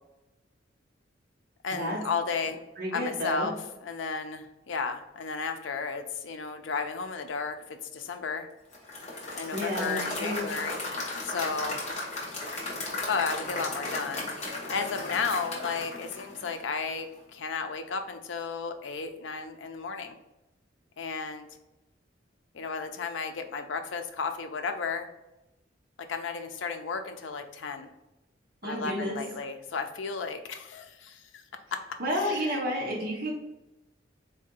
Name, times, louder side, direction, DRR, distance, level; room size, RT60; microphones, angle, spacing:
voice 1, 1.6-2.6 2.9-3.5 3.8-8.5 9.4-10.8 11.2-11.8 13.1-20.2 21.0-21.5 22.5-25.1 26.1-27.9 28.6-31.4 31.7-31.8 32.1-32.6, left 5 dB, 80° left, 7 dB, 0.5 m, -33 dB
voice 2, 2.8-3.5 9.5-10.5 28.6-29.2 32.0-33.3, equal, 55° right, -3 dB, 0.8 m, -30 dB
Applause / Crowd, 8.7-16.9, left 2 dB, 35° left, 1.0 m, -35 dB
3.9 x 2.7 x 3.8 m, 0.96 s
head